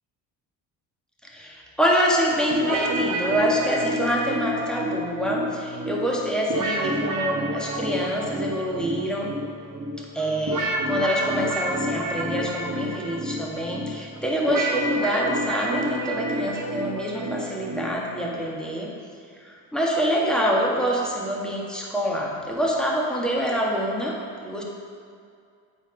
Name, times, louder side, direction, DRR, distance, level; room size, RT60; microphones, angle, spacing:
voice 1, 1.3-9.4 10.0-18.9 19.4-24.6, equal, ahead, -3 dB, 1.8 m, -26 dB
sound 1, 2.5-18.4, right 1 dB, 35° right, 1.3 m, -29 dB
8.1 x 4.6 x 5.2 m, 2.3 s
supercardioid pair, 60°, 50 cm